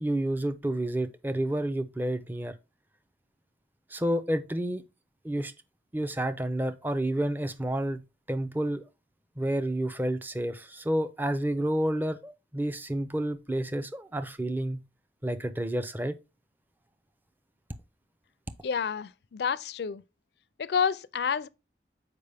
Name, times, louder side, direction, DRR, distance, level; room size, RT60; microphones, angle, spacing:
voice 1, 0.0-2.5 3.9-4.8 5.2-5.5 5.9-8.0 8.3-8.8 9.4-14.8 15.2-16.2, right 1 dB, 10° right, 0.5 m, -30 dB
voice 2, 18.6-20.0 20.6-21.5, left 6 dB, 60° left, 0.4 m, -29 dB
6.7 x 5.0 x 3.4 m
head